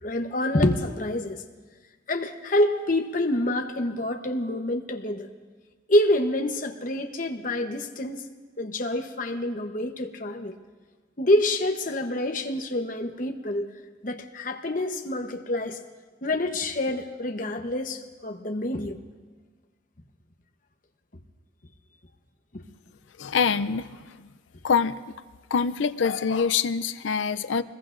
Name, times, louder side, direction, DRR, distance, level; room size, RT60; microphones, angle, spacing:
voice 1, 0.0-1.4 2.1-5.3 5.9-8.2 8.6-10.5 11.2-13.7 14.0-15.8 16.2-19.0 22.5-22.6, left 1 dB, 45° left, 5 dB, 1.0 m, -27 dB
voice 2, 23.2-24.3 24.6-25.1 25.5-27.6, left 6 dB, 80° left, 14 dB, 0.5 m, -25 dB
25.5 x 21.0 x 2.6 m, 1.4 s
head